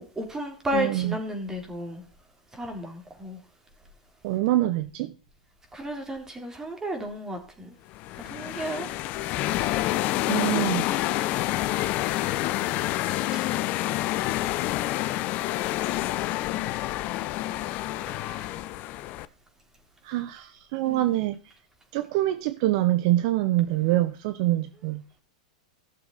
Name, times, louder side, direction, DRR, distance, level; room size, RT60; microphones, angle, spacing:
voice 1, 0.0-2.0 2.5-3.4 5.7-7.7 8.2-8.9 12.2-12.3 13.3-13.4 18.0-18.5 20.8-21.1, equal, 10° right, 3.8 m, -33 dB
voice 2, 0.7-1.1 4.2-5.1 10.3-10.9 20.0-21.4 21.9-25.0, right 15 dB, 55° right, 0.8 m, -25 dB
sound 1, 7.9-19.3, left 15 dB, 40° left, 0.7 m, -28 dB
15.5 x 6.9 x 4.1 m
hypercardioid pair, 115°, 4 cm